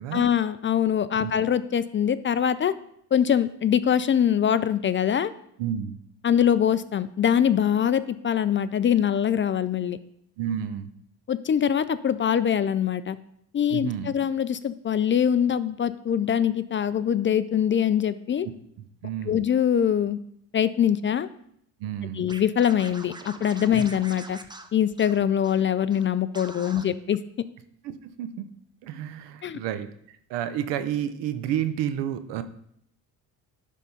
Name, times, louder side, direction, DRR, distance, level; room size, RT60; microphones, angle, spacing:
voice 1, 0.1-2.7 3.1-5.3 6.2-10.0 11.3-13.2 13.5-18.5 19.3-20.2 20.5-21.3 22.2-24.4 24.7-27.2 29.4-29.6, left 9 dB, 30° left, 14 dB, 0.4 m, -23 dB
voice 2, 5.6-6.0 10.4-10.9 13.7-14.1 18.8-19.4 21.8-22.3 23.7-23.8 27.8-28.5 28.8-32.4, right 10 dB, 85° right, 11 dB, 0.8 m, -31 dB
Scratching (performance technique), 22.3-25.6 25.9-26.0 26.3-26.8, right 2 dB, 10° right, 0.6 m, -43 dB
11.0 x 3.7 x 5.4 m, 0.71 s
supercardioid pair, 75°, 41 cm